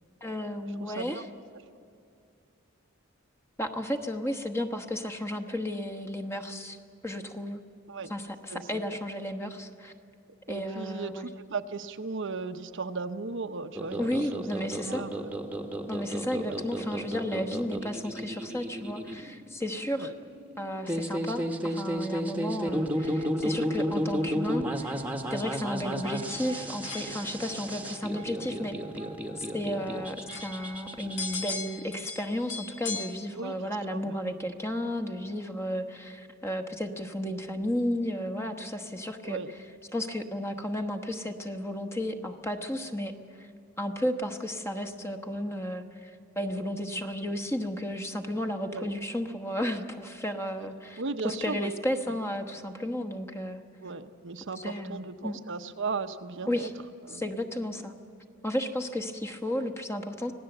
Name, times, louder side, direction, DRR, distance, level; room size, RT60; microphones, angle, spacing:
voice 1, 0.2-1.2 3.6-6.8 7.0-7.6 8.1-9.9 10.5-11.3 14.0-15.0 15.9-20.1 20.6-25.0 25.3-28.8 29.4-39.4 39.9-43.1 43.4-43.5 43.8-46.1 46.4-53.6 54.6-55.4 56.5-56.7 57.1-57.9 58.4-60.3, left 1 dB, 15° left, 6 dB, 1.2 m, -33 dB
voice 2, 0.8-1.2 7.9-8.1 8.5-8.8 10.5-15.3 16.5-16.6 20.0-20.1 25.8-26.0 33.3-34.2 39.2-39.5 48.7-48.9 51.0-51.7 53.8-56.7 57.0-57.3, right 4 dB, 65° right, 8 dB, 0.9 m, -36 dB
sound 1, 13.7-31.5, equal, 10° right, 1.2 m, -33 dB
sound 2, 21.3-33.1, left 3 dB, 60° left, 2.3 m, -43 dB
25.5 x 17.5 x 8.0 m, 2.6 s
head